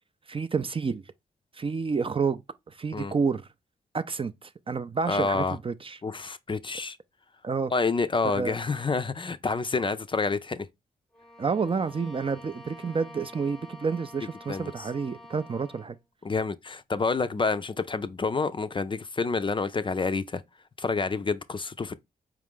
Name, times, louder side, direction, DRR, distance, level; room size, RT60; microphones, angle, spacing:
voice 1, 0.3-1.0 1.5-2.4 2.7-3.5 3.9-6.0 7.4-7.7 8.2-8.6 11.4-16.0, right 5 dB, 30° right, 0.4 m, -29 dB
voice 2, 5.1-5.6 6.0-7.0 7.7-10.7 14.5-14.7 16.2-20.4 20.8-22.0, left 4 dB, 30° left, 0.4 m, -28 dB
Bowed string instrument, 11.1-16.0, left 2 dB, ahead, 0.8 m, -48 dB
4.6 x 2.4 x 3.5 m
supercardioid pair, 45°, 17 cm